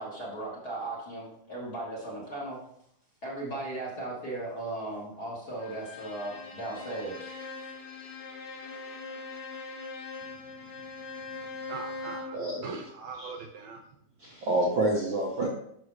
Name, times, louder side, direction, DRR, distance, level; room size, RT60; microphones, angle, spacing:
voice 1, 0.0-2.6 3.2-7.3, right 2 dB, 35° left, -5 dB, 1.7 m, -37 dB
Bowed string instrument, 5.6-12.4, left 3 dB, 65° left, 2.1 m, -41 dB
voice 2, 11.7-13.8, right 4 dB, 75° right, 3 dB, 1.8 m, -41 dB
voice 3, 12.3-12.6 13.2-13.3 14.2-15.5, right 1 dB, 60° right, -3 dB, 1.4 m, -28 dB
11.0 x 6.3 x 3.2 m, 0.72 s
omnidirectional pair, 3.8 m